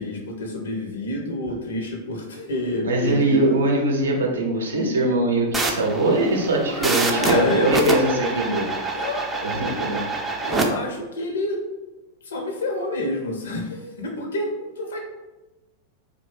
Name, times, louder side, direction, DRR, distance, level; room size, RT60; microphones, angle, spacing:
voice 1, 0.0-3.6 6.7-8.0 8.9-9.6 10.4-11.7 12.2-15.0, left 2 dB, 65° left, 1 dB, 0.5 m, -27 dB
voice 2, 2.8-8.7 9.4-10.1, right 2 dB, 70° right, 0 dB, 0.5 m, -22 dB
sound 1, 5.5-10.7, right 3 dB, 15° right, 0.4 m, -26 dB
2.6 x 2.1 x 3.2 m, 1.1 s
figure-of-eight pair, 90°, 0 cm